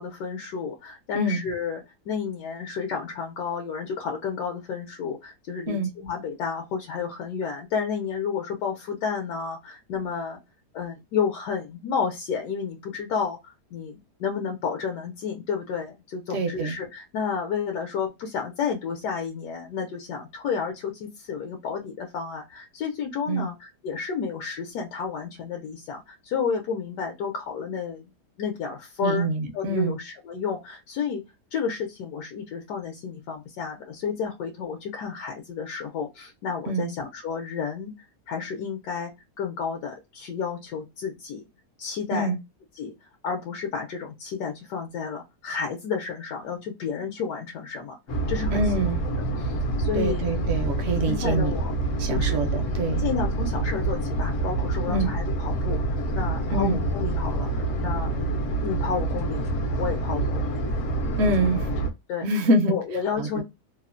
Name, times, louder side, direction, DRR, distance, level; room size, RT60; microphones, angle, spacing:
voice 1, 0.0-10.4 10.7-28.0 28.4-29.3 29.5-31.2 31.5-37.9 38.3-39.1 39.4-41.4 41.8-42.3 42.7-42.9 43.2-48.0 48.3-48.8 49.4-50.3 51.0-51.7 52.1-52.5 53.0-55.8 56.1-58.1 58.6-59.4 59.8-60.6 62.1-62.3 62.7-63.4, left 6 dB, 80° left, 1.2 m, -31 dB
voice 2, 16.3-16.8 23.3-23.5 29.0-30.0 36.7-36.9 42.1-42.4 48.5-49.0 49.9-51.5 52.0-53.0 54.9-55.1 56.5-56.8 61.2-61.7 62.2-62.7 63.2-63.4, right 2 dB, 65° right, 0.6 m, -25 dB
sound 1, 48.1-61.9, right 2 dB, 60° left, 0.9 m, -27 dB
3.0 x 2.1 x 2.4 m
omnidirectional pair, 1.8 m